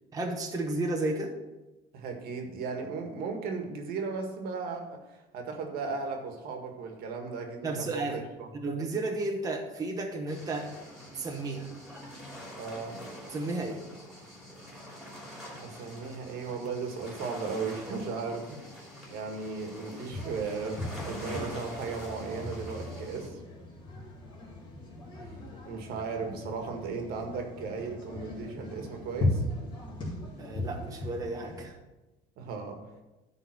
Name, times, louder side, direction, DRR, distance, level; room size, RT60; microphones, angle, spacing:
voice 1, 0.1-1.3 7.6-8.2 8.5-10.8 11.1-11.8 13.3-13.8 30.4-31.8, right 2 dB, 20° right, 1 dB, 1.0 m, -33 dB
voice 2, 1.9-8.5 12.6-13.0 14.8-14.9 15.6-18.6 19.1-23.4 25.6-29.4 32.4-32.9, right 4 dB, 65° right, 3 dB, 1.6 m, -36 dB
sound 1, 10.3-23.3, equal, ahead, 2.8 m, -45 dB
sound 2, 20.1-31.7, left 1 dB, 30° left, 2.7 m, -37 dB
10.5 x 3.9 x 5.9 m, 1.1 s
cardioid pair, 130°, 17 cm